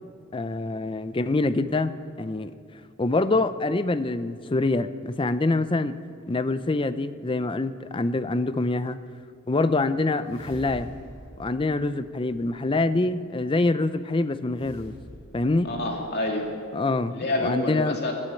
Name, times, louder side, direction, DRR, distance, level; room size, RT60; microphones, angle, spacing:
voice 1, 0.3-1.9 2.2-2.5 3.0-5.9 6.3-9.0 9.5-10.9 11.4-14.9 15.3-15.7 16.7-18.0, left 2 dB, 25° left, 13 dB, 0.5 m, -25 dB
sound 1, 10.2-12.7 14.5-16.2, equal, 75° left, 5.3 m, -46 dB
voice 2, 15.6-16.5 17.1-18.1, left 1 dB, 50° left, 1 dB, 2.5 m, -28 dB
15.5 x 9.8 x 9.0 m, 2.3 s
head